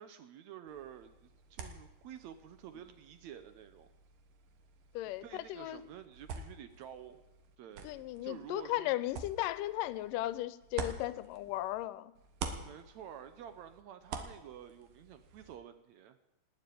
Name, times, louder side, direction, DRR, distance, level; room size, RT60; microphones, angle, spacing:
voice 1, 0.0-3.9 5.2-7.2 7.6-8.9 12.6-16.2, right 9 dB, 75° right, 10 dB, 1.8 m, -50 dB
sound 1, 0.7-11.9 12.2-15.6, right 5 dB, 90° right, 3.0 m, -48 dB
voice 2, 4.9-5.8 7.8-12.1, left 15 dB, 90° left, 16 dB, 2.3 m, -36 dB
19.0 x 7.5 x 9.2 m, 0.97 s
omnidirectional pair, 3.7 m